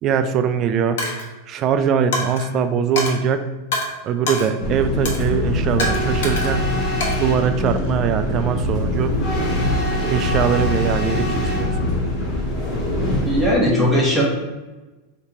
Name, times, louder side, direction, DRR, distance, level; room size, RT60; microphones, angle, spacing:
voice 1, 0.0-1.0 1.5-3.5 4.0-6.8 7.2-9.2 10.0-11.7, right 7 dB, 30° right, 9 dB, 0.3 m, -21 dB
Coin (dropping), 1.0-1.3 2.1-2.5 3.0-3.2 3.7-3.9 4.3-4.5 5.0-5.3 5.8-6.6 7.0-7.9, left 2 dB, 75° left, 1.1 m, -26 dB
sound 1, 4.6-13.6, left 1 dB, 20° left, 1.0 m, -23 dB
voice 2, 13.2-14.2, equal, 5° left, -6 dB, 1.1 m, -18 dB
3.3 x 2.9 x 4.7 m, 1.1 s
supercardioid pair, 160°, 0 cm